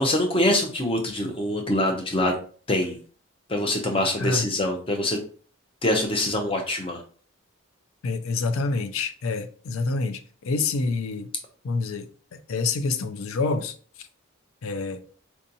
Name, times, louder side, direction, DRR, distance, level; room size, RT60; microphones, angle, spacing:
voice 1, 0.0-2.3 2.7-3.0 3.5-5.2 5.8-7.0, left 1 dB, 25° left, 0.6 m, -24 dB
voice 2, 8.0-11.3 11.6-12.1 12.3-14.1 14.6-15.0, left 3 dB, 75° left, 0.4 m, -27 dB
4.5 x 2.8 x 2.6 m
head